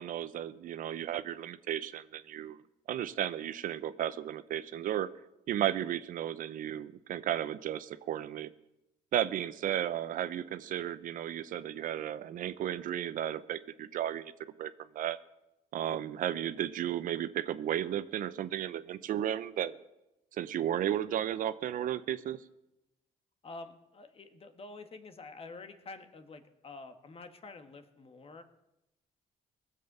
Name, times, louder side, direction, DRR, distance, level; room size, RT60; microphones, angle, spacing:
voice 1, 0.0-2.6 2.9-5.1 5.5-8.5 9.1-14.3 14.6-15.2 15.7-19.8 20.3-22.4, right 11 dB, 70° right, 14 dB, 0.7 m, -34 dB
voice 2, 23.4-28.4, left 3 dB, 40° left, 8 dB, 1.6 m, -48 dB
19.0 x 7.7 x 6.8 m, 0.92 s
cardioid pair, 85°, 15 cm